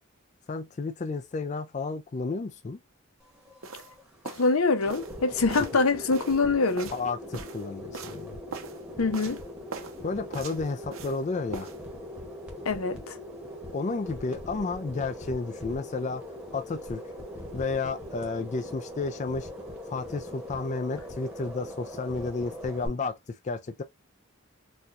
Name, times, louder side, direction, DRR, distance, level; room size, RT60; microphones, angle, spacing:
voice 1, 0.5-2.8 6.9-8.4 10.0-11.7 13.7-16.2 16.5-17.0 17.5-19.5 19.9-23.8, left 3 dB, 35° left, 0.3 m, -32 dB
sound 1, 3.2-22.9, left 1 dB, 5° right, 1.0 m, -41 dB
sound 2, 3.6-3.9 4.2-4.5 4.9-5.2 5.5-5.8 6.1-7.6 7.9-8.2 8.5-8.8 9.1-9.4 9.7-10.0 10.3-11.2 11.5-11.8, right 4 dB, 70° right, 0.7 m, -41 dB
voice 2, 4.2-6.9 9.0-9.4 12.6-13.2, left 3 dB, 80° left, 0.7 m, -25 dB
4.2 x 2.3 x 2.4 m
head